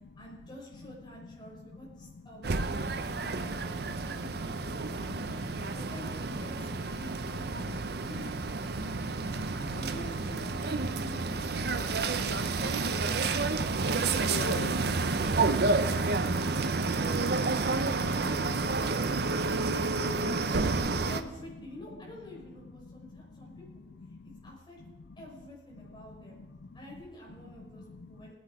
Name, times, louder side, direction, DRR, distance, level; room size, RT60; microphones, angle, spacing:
voice 1, 0.2-9.2 9.5-13.8 14.2-17.6 18.2-23.9 24.4-24.8 25.2-26.4 26.7-28.3, equal, 25° left, -4 dB, 5.3 m, -48 dB
sound 1, 2.4-21.2, right 3 dB, 60° right, 0.8 m, -30 dB
voice 2, 4.9-5.8 7.6-8.1 8.7-9.5 13.1-14.8 22.8-23.6 24.0-24.4 25.7-26.0 26.3-26.8 27.6-28.3, left 4 dB, 60° left, 10 dB, 0.5 m, -46 dB
19.0 x 9.4 x 5.0 m, 1.2 s
head